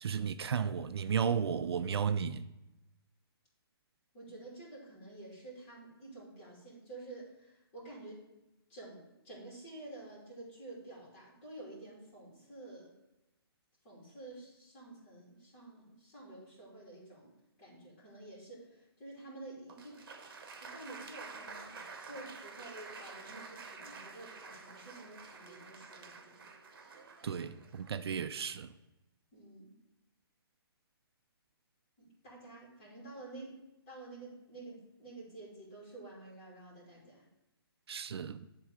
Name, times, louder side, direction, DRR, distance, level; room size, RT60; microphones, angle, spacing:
voice 1, 0.0-2.4 27.2-28.7 37.9-38.5, right 7 dB, 80° right, 0.4 m, -34 dB
voice 2, 4.1-8.2 8.7-12.9 13.8-17.3 17.6-20.0 20.6-21.8 22.0-26.4 29.3-29.7 32.0-33.6 33.9-37.2, right 2 dB, 25° left, 2.9 m, -50 dB
Applause, 19.7-28.6, right 4 dB, 60° right, 1.2 m, -50 dB
11.0 x 3.8 x 4.8 m
hypercardioid pair, 170°, 13 cm